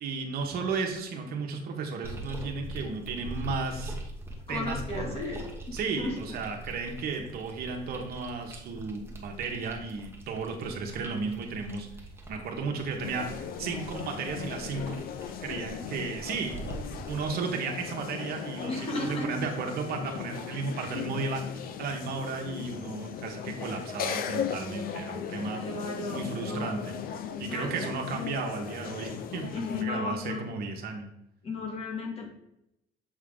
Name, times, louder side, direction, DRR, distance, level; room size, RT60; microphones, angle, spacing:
voice 1, 0.0-3.9 4.5-5.2 5.7-15.0 15.4-16.6 17.1-25.6 26.1-27.0 27.4-31.0, right 4 dB, 65° right, 2 dB, 1.2 m, -34 dB
sound 1, 2.0-17.3, right 1 dB, 15° right, 1.1 m, -43 dB
voice 2, 4.5-6.1 18.7-19.3 25.5-26.7 27.5-27.7 29.5-30.4 31.4-32.3, left 3 dB, 35° left, 0 dB, 1.8 m, -34 dB
sound 2, 13.0-29.9, left 8 dB, 60° left, 0.5 m, -38 dB
7.3 x 3.7 x 3.7 m, 0.83 s
cardioid pair, 110°, 17 cm